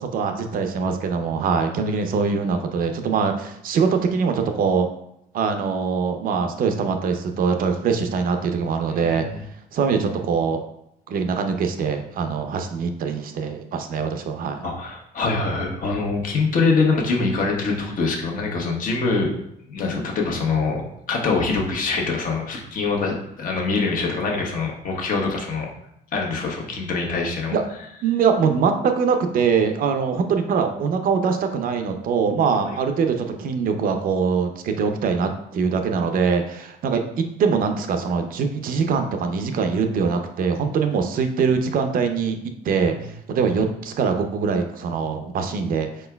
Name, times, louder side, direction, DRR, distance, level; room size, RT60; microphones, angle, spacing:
voice 1, 0.0-4.9 5.3-9.3 9.7-10.6 11.1-14.6 27.5-27.6 28.0-45.9, right 5 dB, 55° right, 6 dB, 0.6 m, -23 dB
voice 2, 9.0-9.4 14.6-19.3 19.7-25.7 26.1-27.6 42.7-42.8, left 4 dB, 55° left, 0 dB, 1.1 m, -24 dB
4.8 x 4.4 x 2.2 m, 0.77 s
cardioid pair, 110°, 17 cm